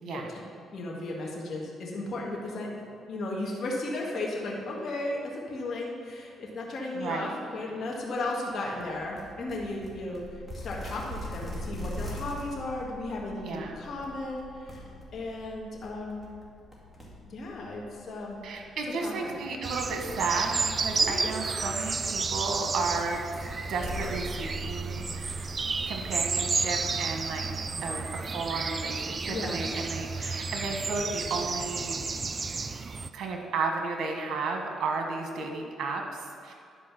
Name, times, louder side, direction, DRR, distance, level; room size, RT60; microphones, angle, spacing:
voice 1, 0.0-0.4 0.7-10.2 10.6-14.8 15.1-16.2 17.3-18.4 19.0-19.3 21.0-21.3 29.3-29.6, left 2 dB, 55° left, -3 dB, 1.7 m, -35 dB
voice 2, 6.9-7.4 13.4-13.7 18.4-23.2 23.7-25.5 25.8-27.5 27.8-32.0 33.1-36.5, right 4 dB, 70° right, 2 dB, 1.5 m, -33 dB
sound 1, 8.8-26.2, left 1 dB, 5° left, 2.3 m, -43 dB
sound 2, 19.6-33.1, right 4 dB, 35° right, 0.4 m, -32 dB
11.0 x 4.9 x 6.1 m, 2.4 s
cardioid pair, 90°, 0 cm